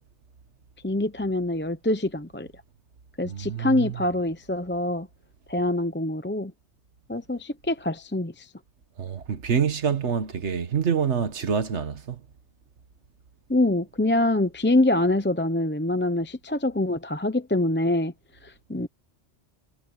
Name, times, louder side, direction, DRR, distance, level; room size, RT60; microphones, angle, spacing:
voice 1, 0.8-2.5 3.2-5.1 5.5-6.5 7.1-8.5 13.5-18.1 18.4-18.9, left 1 dB, 10° left, 0.7 m, -25 dB
voice 2, 3.3-4.0 9.0-12.2, right 7 dB, 85° right, 1.6 m, -26 dB
omnidirectional pair, 1.1 m